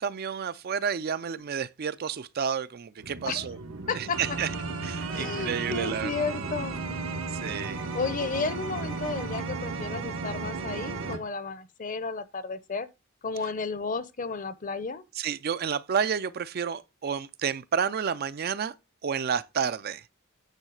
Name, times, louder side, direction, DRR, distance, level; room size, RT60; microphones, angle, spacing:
voice 1, 0.0-3.6 3.9-4.5 4.8-6.1 7.3-7.8 15.2-18.7 19.0-20.0, right 7 dB, 50° right, 0.4 m, -30 dB
sound 1, 3.0-11.2, right 3 dB, 85° right, 1.2 m, -34 dB
voice 2, 3.9-4.2 5.1-7.1 7.9-12.9 13.2-15.0, left 4 dB, 40° left, 0.7 m, -33 dB
9.2 x 3.2 x 6.3 m
head